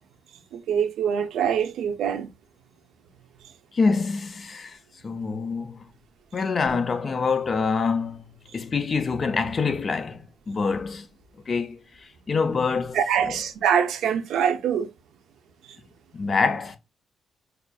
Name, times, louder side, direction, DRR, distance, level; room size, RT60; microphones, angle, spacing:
voice 1, 0.5-2.3 12.9-14.9, right 8 dB, 75° right, 0.5 m, -24 dB
voice 2, 3.7-4.8 5.0-5.9 6.3-11.1 11.5-13.4 16.1-16.8, left 4 dB, 35° left, 0.4 m, -26 dB
4.8 x 2.5 x 2.2 m
cardioid pair, 120°, 0 cm